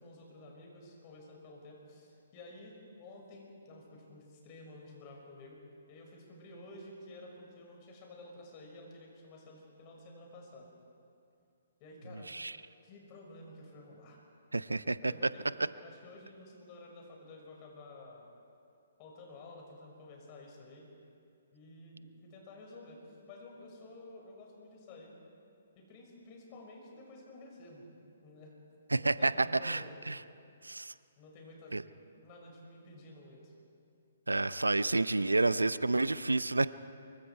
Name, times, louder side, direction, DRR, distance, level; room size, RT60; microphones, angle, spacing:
voice 1, 0.0-5.6 5.9-10.7 11.8-12.3 12.8-14.2 15.0-15.4 15.8-18.3 19.0-20.9 21.5-25.1 25.8-27.8 28.2-28.5 29.0-30.0 31.2-31.8 32.2-33.5, left 2 dB, 30° left, 0 dB, 5.7 m, -52 dB
voice 2, 14.5-15.1 28.9-30.2 30.6-30.9 31.7-31.8 34.3-36.7, right 2 dB, 80° right, 17 dB, 0.6 m, -29 dB
25.0 x 23.5 x 4.7 m, 2.5 s
figure-of-eight pair, 125°, 0 cm